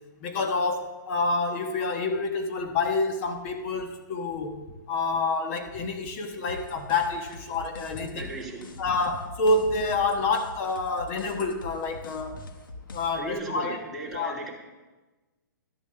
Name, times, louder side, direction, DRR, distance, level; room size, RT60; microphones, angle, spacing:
voice 1, 0.2-8.3 8.8-12.5 12.9-13.8 14.1-14.4, left 3 dB, 40° left, 6 dB, 1.1 m, -28 dB
sound 1, 6.5-13.3, left 2 dB, 85° left, 1.4 m, -44 dB
voice 2, 8.1-8.6 13.2-14.5, right 2 dB, ahead, -7 dB, 2.5 m, -36 dB
12.0 x 7.0 x 6.8 m, 1.2 s
hypercardioid pair, 150°, 11 cm